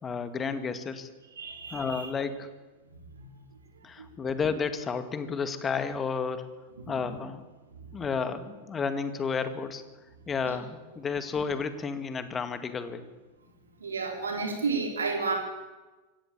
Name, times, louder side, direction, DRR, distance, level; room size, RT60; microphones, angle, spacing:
voice 1, 0.0-1.1 1.7-2.5 3.8-6.5 6.9-7.4 7.9-9.8 10.3-13.1, left 5 dB, 20° left, 10 dB, 2.0 m, -31 dB
voice 2, 1.4-2.1 3.1-3.3 3.8-4.1 6.8-7.0 10.5-10.6 13.8-15.3, right 4 dB, 70° right, 2 dB, 3.8 m, -32 dB
24.5 x 17.5 x 7.4 m, 1.2 s
figure-of-eight pair, 90°, 0 cm